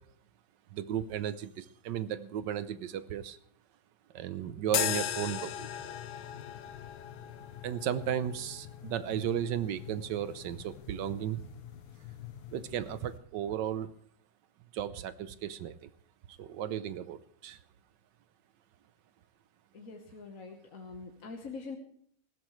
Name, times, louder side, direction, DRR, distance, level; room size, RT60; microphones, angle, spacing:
voice 1, 0.7-3.4 4.1-5.7 7.6-11.5 12.5-13.9 14.7-15.7 16.4-17.6, right 10 dB, 65° right, 15 dB, 1.2 m, -35 dB
sound 1, 4.7-13.2, left 10 dB, 75° left, 1.6 m, -39 dB
voice 2, 19.7-21.8, left 4 dB, 45° left, 2 dB, 1.5 m, -44 dB
19.0 x 15.5 x 3.2 m, 0.63 s
omnidirectional pair, 2.3 m